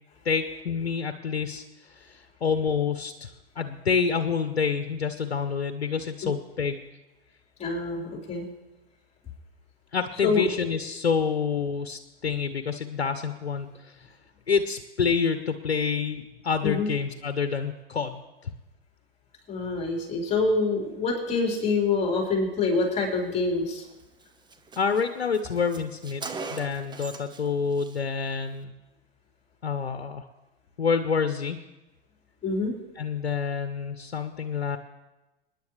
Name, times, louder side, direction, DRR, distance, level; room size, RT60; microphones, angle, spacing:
voice 1, 0.2-1.6 2.1-3.3 3.6-6.8 9.9-13.9 14.5-18.5 24.8-26.2 26.5-28.7 29.6-30.2 30.8-31.6 33.0-34.8, left 6 dB, 90° left, 9 dB, 0.9 m, -27 dB
voice 2, 7.6-8.5 10.2-10.5 16.6-16.9 19.5-23.9 32.4-32.7, left 3 dB, 20° left, -2 dB, 4.4 m, -26 dB
Car, 23.8-23.9 24.2-24.3 24.5-27.5 27.7-28.0, right 4 dB, 15° right, 1.0 m, -40 dB
25.5 x 10.5 x 3.3 m, 1.0 s
hypercardioid pair, 100°, 31 cm